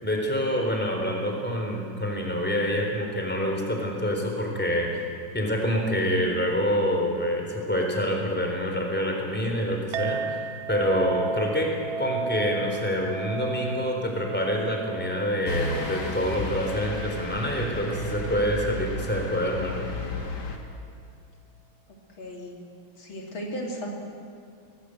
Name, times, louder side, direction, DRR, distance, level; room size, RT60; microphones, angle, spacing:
voice 1, 0.0-5.1 5.3-10.4 10.7-20.0, equal, 5° left, 1 dB, 3.8 m, -26 dB
Chink clink, 9.9-18.6, right 5 dB, 80° right, 1.6 m, -35 dB
sound 1, 15.5-20.6, left 2 dB, 55° left, 2.7 m, -33 dB
voice 2, 22.2-22.6 23.0-23.9, equal, 75° left, 0 dB, 3.8 m, -35 dB
25.5 x 19.0 x 7.9 m, 2.3 s
omnidirectional pair, 2.2 m